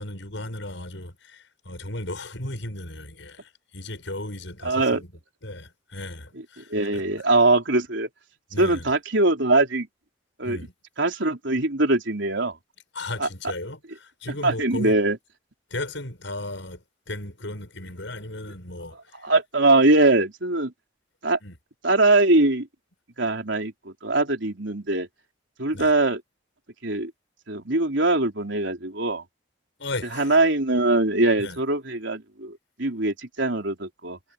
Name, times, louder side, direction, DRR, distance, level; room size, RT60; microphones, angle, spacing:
voice 1, 0.0-5.1 5.4-7.0 8.5-8.9 10.4-10.7 12.9-15.0 15.7-19.3 21.4-21.6 25.7-25.9 29.8-30.4 31.4-31.6, left 2 dB, 75° left, 6.7 m, -35 dB
voice 2, 4.6-5.0 6.6-8.1 8.6-9.9 10.4-10.6 11.0-12.6 13.2-13.3 14.4-15.2 19.2-20.7 21.2-21.4 21.8-22.7 23.2-25.1 25.6-26.2 26.8-27.1 27.5-29.2 30.1-34.2, right 2 dB, 70° right, 4.1 m, -22 dB
head